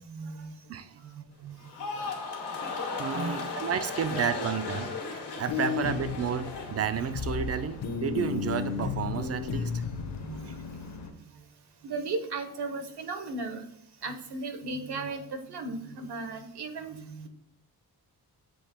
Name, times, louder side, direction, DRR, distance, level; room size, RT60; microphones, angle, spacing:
voice 1, 0.0-0.5 0.9-1.7 3.1-3.3 4.0-4.2 9.9-10.4 11.8-13.6 14.0-17.3, right 3 dB, 75° right, 8 dB, 1.1 m, -36 dB
sound 1, 1.6-7.9 8.2-8.7, left 4 dB, 85° left, 1.6 m, -37 dB
voice 2, 3.0-5.0 5.4-9.8 10.4-10.6, right 7 dB, 40° right, 12 dB, 0.4 m, -31 dB
sound 2, 5.5-6.1 7.1-7.5 7.8-10.1, left 6 dB, 70° left, 0.9 m, -32 dB
sound 3, 5.8-11.1, left 5 dB, 45° left, 0.8 m, -43 dB
7.8 x 2.9 x 4.2 m, 0.69 s
wide cardioid pair, 165°, 40 cm